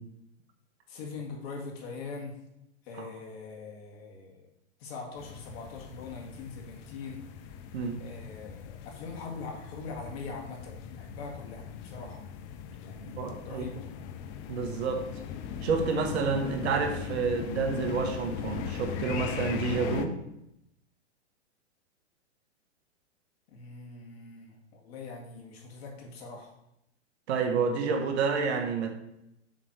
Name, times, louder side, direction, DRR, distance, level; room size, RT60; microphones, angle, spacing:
voice 1, 0.9-2.4 2.9-4.5 4.8-7.2 8.0-12.2 12.8-13.8 23.5-26.5, left 4 dB, 55° left, 0 dB, 2.0 m, -42 dB
sound 1, 5.2-20.1, left 8 dB, 25° left, 0.4 m, -39 dB
voice 2, 13.2-13.6 14.5-15.1 15.6-20.2 27.3-28.9, right 5 dB, 60° right, 4 dB, 1.4 m, -29 dB
7.3 x 3.2 x 5.9 m, 0.82 s
hypercardioid pair, 130°, 36 cm